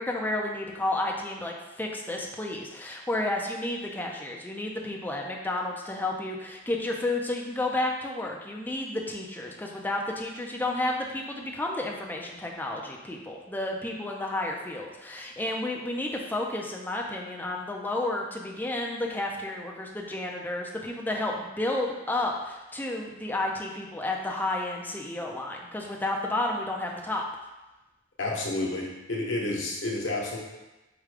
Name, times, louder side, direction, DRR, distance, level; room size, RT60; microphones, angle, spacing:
voice 1, 0.0-27.3, left 2 dB, 10° left, -1 dB, 0.5 m, -31 dB
voice 2, 28.2-30.4, left 2 dB, 75° left, -3 dB, 1.0 m, -30 dB
4.9 x 2.2 x 4.9 m, 1.1 s
head